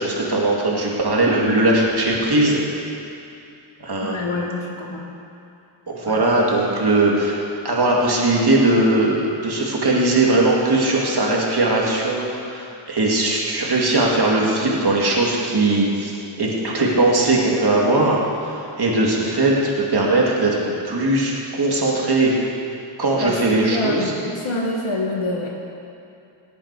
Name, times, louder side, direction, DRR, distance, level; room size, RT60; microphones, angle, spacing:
voice 1, 0.0-2.6 3.8-4.3 5.9-7.4 7.6-20.6 20.8-22.3 23.0-24.0, right 2 dB, 50° right, -3 dB, 2.3 m, -19 dB
voice 2, 4.0-5.1 6.1-6.2 23.0-23.4 23.7-25.5, left 2 dB, 75° left, -1 dB, 1.7 m, -26 dB
18.0 x 8.7 x 4.8 m, 2.6 s
wide cardioid pair, 80°, 50 cm